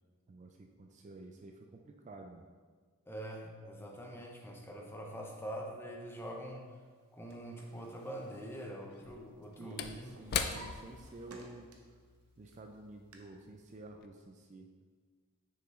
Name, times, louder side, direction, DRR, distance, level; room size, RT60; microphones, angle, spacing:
voice 1, 0.3-2.5 9.6-11.7 12.4-14.7, right 2 dB, 30° right, 3 dB, 0.4 m, -51 dB
voice 2, 3.1-6.7 7.1-10.2, equal, 10° left, 1 dB, 0.6 m, -44 dB
Drawer open or close, 6.9-9.4 9.7-12.0 12.5-13.1, right 2 dB, 80° right, 0.8 m, -57 dB
Slam / Wood, 7.3-7.4 8.9-13.6 13.9-14.1, left 7 dB, 45° left, 0.3 m, -41 dB
6.4 x 5.0 x 3.6 m, 1.5 s
head